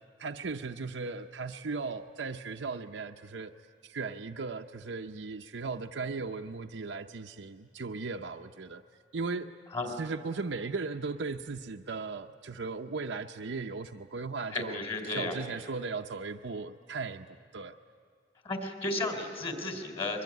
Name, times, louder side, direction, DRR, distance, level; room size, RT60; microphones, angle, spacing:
voice 1, 0.2-3.5 3.8-8.8 9.1-9.5 10.0-17.7, right 4 dB, 85° right, 5 dB, 0.7 m, -37 dB
voice 2, 14.5-15.4 18.4-20.2, left 2 dB, 30° left, 4 dB, 3.5 m, -33 dB
23.0 x 21.5 x 9.6 m, 2.2 s
head